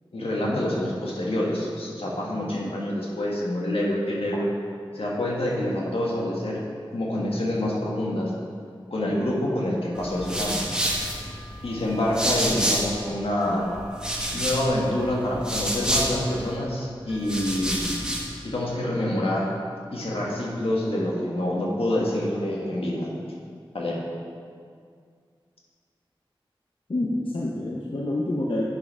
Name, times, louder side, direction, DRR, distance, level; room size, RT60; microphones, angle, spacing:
voice 1, 0.1-4.5 4.9-6.6 6.9-8.3 8.9-10.6 11.6-13.6 14.3-18.0 18.4-19.5 19.9-23.1 23.7-24.0, left 1 dB, 90° left, -4 dB, 1.8 m, -26 dB
voice 2, 2.4-2.7 26.9-28.6, left 1 dB, 65° left, -4 dB, 0.9 m, -28 dB
sound 1, 9.9-13.1 13.4-16.5 17.1-18.3, equal, 10° right, 1.6 m, -29 dB
9.8 x 6.6 x 4.4 m, 2.2 s
wide cardioid pair, 55°, 9 cm